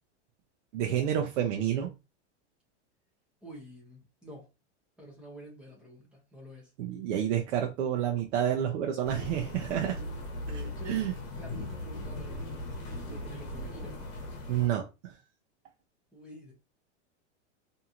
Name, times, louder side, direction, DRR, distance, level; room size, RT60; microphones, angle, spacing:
voice 1, 0.7-1.9 6.8-10.0 10.9-11.1 14.5-15.1, right 10 dB, 85° right, 0.6 m, -29 dB
voice 2, 3.4-4.5 5.0-6.7 9.7-11.0 11.4-12.5 12.9-14.0 16.1-16.5, equal, 5° right, 0.6 m, -48 dB
sound 1, 9.0-14.7, left 1 dB, 50° left, 1.0 m, -39 dB
2.9 x 2.7 x 2.3 m
supercardioid pair, 165°, 36 cm